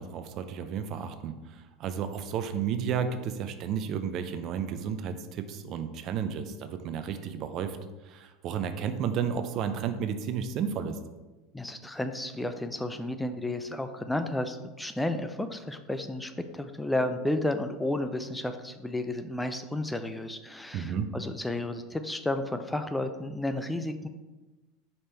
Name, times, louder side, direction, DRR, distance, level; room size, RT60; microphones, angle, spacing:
voice 1, 0.0-7.8 8.0-11.0 20.7-21.1, right 7 dB, 45° right, 9 dB, 0.6 m, -32 dB
voice 2, 11.5-24.1, left 1 dB, 5° left, 8 dB, 0.5 m, -32 dB
5.1 x 4.3 x 4.3 m, 1.2 s
hypercardioid pair, 80°, 0 cm